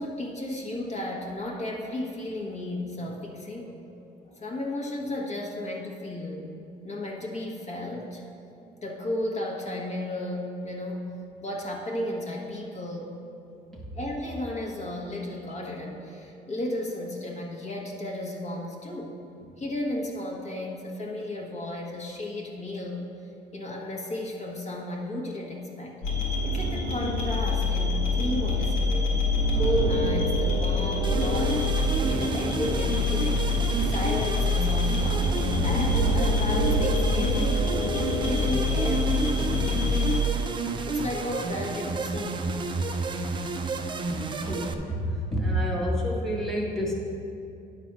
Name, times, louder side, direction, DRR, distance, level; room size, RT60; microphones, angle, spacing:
voice 1, 0.0-3.8 4.3-6.5 6.8-8.2 8.8-11.1 11.4-13.1 13.9-23.1 23.5-26.0 26.4-29.1 29.4-31.6 32.1-33.5 33.8-37.9 38.3-42.5, left 1 dB, 40° left, -2 dB, 1.4 m, -34 dB
sound 1, 26.0-40.2, left 1 dB, 85° left, 2.2 m, -25 dB
sound 2, 31.0-44.7, right 3 dB, 30° right, 0.6 m, -31 dB
voice 2, 44.4-46.9, equal, ahead, -3 dB, 1.3 m, -28 dB
10.0 x 4.0 x 6.0 m, 2.6 s
cardioid pair, 110°, 17 cm